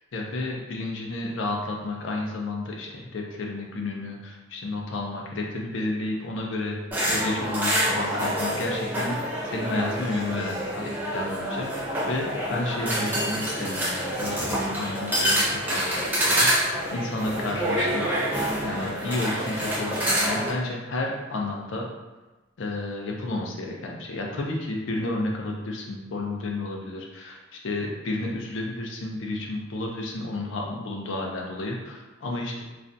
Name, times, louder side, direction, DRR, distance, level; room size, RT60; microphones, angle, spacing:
voice 1, 0.1-6.8 7.1-18.1 18.6-21.8 22.6-32.6, left 2 dB, 70° left, 0 dB, 0.5 m, -31 dB
sound 1, 6.9-20.5, equal, 10° right, 0.6 m, -27 dB
2.4 x 2.1 x 2.6 m, 1.2 s
head